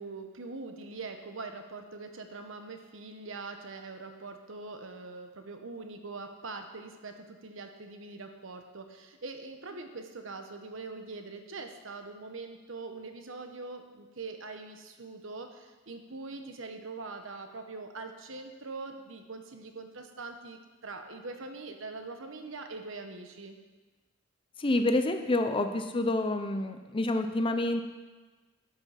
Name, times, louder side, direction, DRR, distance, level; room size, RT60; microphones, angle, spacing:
voice 1, 0.0-23.6, right 3 dB, 70° right, 6 dB, 1.0 m, -43 dB
voice 2, 24.6-27.8, left 2 dB, 25° left, 7 dB, 0.5 m, -28 dB
11.5 x 5.8 x 5.7 m, 1.3 s
head